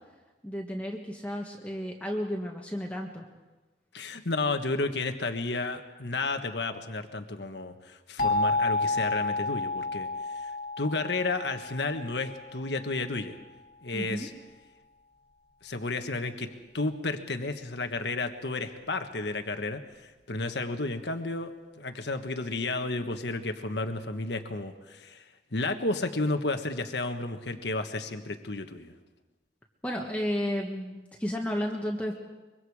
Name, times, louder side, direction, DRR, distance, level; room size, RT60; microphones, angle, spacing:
voice 1, 0.4-3.3 13.9-14.3 29.8-32.1, equal, 10° left, 0 dB, 1.4 m, -32 dB
voice 2, 3.9-10.1 10.4-10.5 10.8-13.4 13.8-14.3 15.6-16.5 16.7-25.2 25.5-28.9, left 2 dB, 75° left, 7 dB, 1.4 m, -32 dB
sound 1, 8.2-12.9, left 2 dB, 50° left, 2.0 m, -30 dB
24.0 x 23.0 x 4.9 m, 1.2 s
head